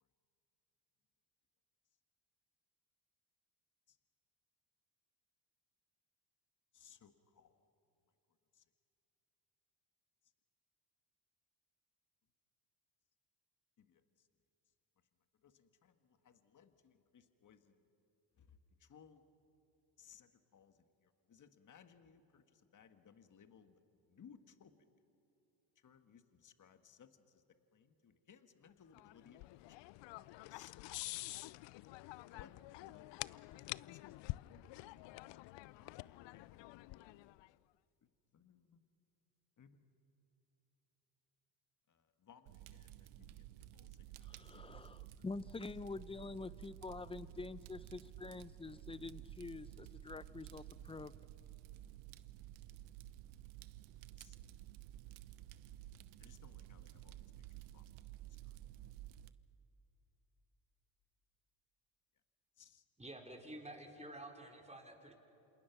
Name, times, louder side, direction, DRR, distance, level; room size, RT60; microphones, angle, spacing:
voice 1, 6.7-7.5 13.8-14.0 15.4-15.9 16.2-17.8 18.4-19.2 20.0-20.7 21.3-23.7 24.1-24.7 25.8-27.4 27.7-30.7 31.3-31.4 32.3-34.6 35.2-36.5 38.3-38.9 39.6-39.8 41.9-43.9 44.2-45.0 54.2-54.4 56.2-57.2 57.5-57.8 62.6-62.8, left 7 dB, 40° left, 8 dB, 1.7 m, -64 dB
sound 1, 28.9-37.5, left 20 dB, 65° left, 0.6 m, -48 dB
Fire, 42.5-59.3, right 13 dB, 85° right, 1.0 m, -53 dB
voice 2, 44.2-51.1, left 3 dB, 10° left, 16 dB, 0.7 m, -47 dB
voice 3, 63.0-65.1, right 1 dB, 15° right, 1 dB, 4.4 m, -50 dB
27.5 x 27.5 x 6.0 m, 2.9 s
supercardioid pair, 80°, 46 cm